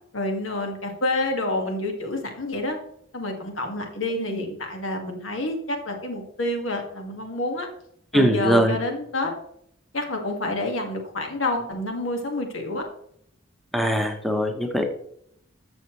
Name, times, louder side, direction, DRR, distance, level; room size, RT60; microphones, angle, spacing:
voice 1, 0.1-2.8 3.1-7.7 8.1-9.3 9.9-12.8, left 2 dB, 85° left, 3 dB, 2.0 m, -28 dB
voice 2, 8.1-8.8 13.7-14.9, equal, ahead, 4 dB, 0.8 m, -21 dB
12.5 x 7.1 x 3.2 m, 0.69 s
head